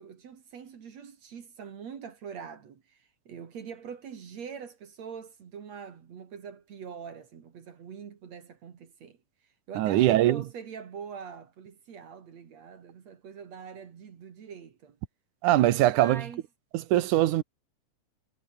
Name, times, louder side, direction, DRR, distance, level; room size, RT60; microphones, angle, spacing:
voice 1, 0.0-9.2 9.7-15.0 15.9-16.4, right 7 dB, 60° right, 3.3 m, -43 dB
voice 2, 9.8-10.4 15.4-16.2 16.7-17.4, right 14 dB, 90° right, 2.5 m, -22 dB
omnidirectional pair, 3.4 m